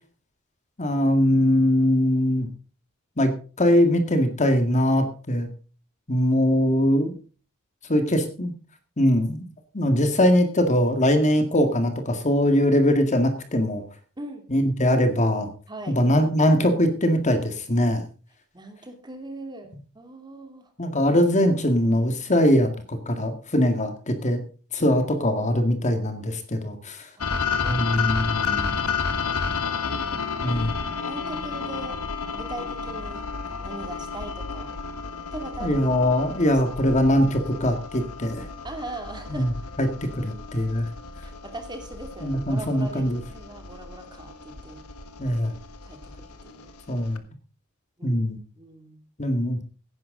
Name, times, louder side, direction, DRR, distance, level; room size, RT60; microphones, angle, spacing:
voice 1, 0.8-2.5 3.2-3.3 3.6-5.5 6.1-7.1 7.9-8.5 9.0-9.5 9.7-13.8 14.5-15.5 15.9-18.0 20.8-24.4 24.7-27.1 27.6-28.8 30.4-30.8 35.6-38.5 39.3-39.5 39.8-39.9 40.2-40.9 42.2-43.2 45.2-45.5 46.9-47.2 48.0-48.4 49.2-49.6, left 1 dB, 35° left, 7 dB, 1.9 m, -22 dB
voice 2, 15.7-16.0 18.5-20.7 27.2-28.1 29.8-30.4 31.1-32.0 32.3-34.8 35.3-35.8 36.5-36.6 37.0-37.1 38.6-39.5 41.2-44.9 45.8-46.7 48.0-48.2 48.6-49.0, right 2 dB, 20° right, 6 dB, 2.5 m, -40 dB
sound 1, 27.2-47.2, left 5 dB, 80° left, 1.5 m, -32 dB
17.0 x 10.5 x 3.8 m, 0.37 s
head